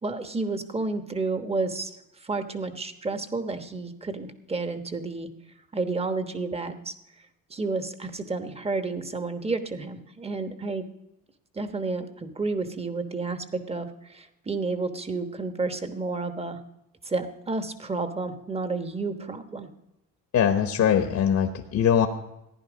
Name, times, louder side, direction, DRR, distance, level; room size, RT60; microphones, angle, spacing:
voice 1, 0.0-1.9 2.2-5.3 5.7-6.9 7.5-10.8 11.5-16.6 17.0-19.7, right 3 dB, 20° right, 8 dB, 1.2 m, -31 dB
voice 2, 20.3-22.1, left 8 dB, 55° left, 5 dB, 1.1 m, -22 dB
15.0 x 10.5 x 5.1 m, 0.89 s
cardioid pair, 115°, 33 cm